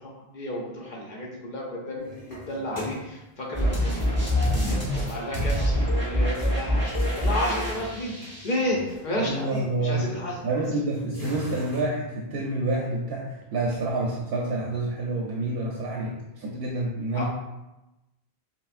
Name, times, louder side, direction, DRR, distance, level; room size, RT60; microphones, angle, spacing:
voice 1, 0.0-10.6 17.1-17.2, left 1 dB, 55° left, -3 dB, 0.7 m, -32 dB
sound 1, 2.0-3.4 4.3-5.3 5.7-5.8 6.3-11.8, left 1 dB, 20° left, 1.6 m, -43 dB
sound 2, 3.5-8.6, equal, 10° right, 0.8 m, -25 dB
voice 2, 9.2-10.0 10.4-17.2, right 2 dB, 70° right, -3 dB, 0.7 m, -28 dB
5.5 x 2.0 x 2.4 m, 0.98 s
omnidirectional pair, 1.1 m